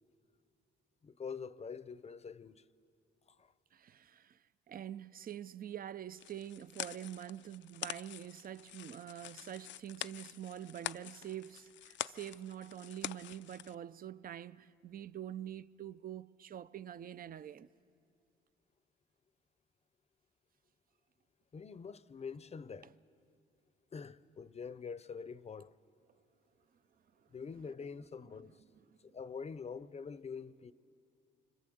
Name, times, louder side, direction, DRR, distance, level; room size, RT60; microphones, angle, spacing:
voice 1, 1.0-2.6 3.4-3.5 21.5-22.9 23.9-25.7 27.3-28.6 29.1-30.7, left 5 dB, 35° left, 0.7 m, -45 dB
voice 2, 3.7-17.7 22.8-22.9 27.6-27.7 28.4-28.5 28.8-29.0, right 10 dB, 45° right, 0.6 m, -46 dB
sound 1, 6.2-13.8, left 12 dB, 65° left, 0.5 m, -46 dB
26.0 x 25.0 x 7.9 m
cardioid pair, 90°, 20 cm